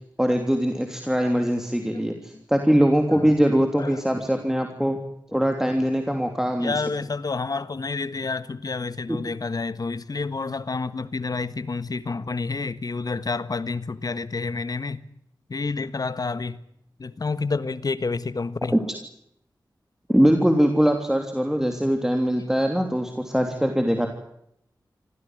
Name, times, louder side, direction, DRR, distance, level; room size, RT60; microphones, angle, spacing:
voice 1, 0.2-5.0 5.3-6.8 9.1-9.2 18.7-18.8 20.1-24.1, equal, 5° right, 3.2 m, -22 dB
voice 2, 1.8-2.1 3.1-3.2 3.7-4.0 4.3-4.4 6.6-15.1 15.5-16.6 17.0-18.8, left 4 dB, 55° left, 1.5 m, -29 dB
25.5 x 16.0 x 9.4 m
wide cardioid pair, 75°, 8 cm